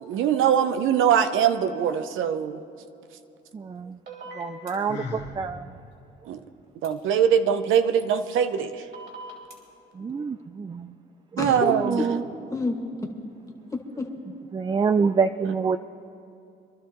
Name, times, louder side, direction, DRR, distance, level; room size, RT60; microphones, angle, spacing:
voice 1, 0.0-2.6 6.3-6.4 6.8-8.9 11.4-12.0, right 8 dB, 85° right, 9 dB, 0.7 m, -22 dB
voice 2, 3.5-4.0 4.3-5.7 10.0-10.9 11.7-12.2 14.5-15.8, right 5 dB, 20° right, 10 dB, 0.3 m, -26 dB
sound 1, 4.1-4.7 6.8-6.9 8.9-9.5, right 2 dB, 60° right, 3.4 m, -40 dB
Sigh, 4.9-5.4, left 3 dB, 60° left, 1.8 m, -35 dB
voice 3, 11.4-12.1 12.5-13.1 14.0-14.1, left 3 dB, 15° left, 2 dB, 1.8 m, -29 dB
25.5 x 12.0 x 3.0 m, 2.7 s
cardioid pair, 90°, 20 cm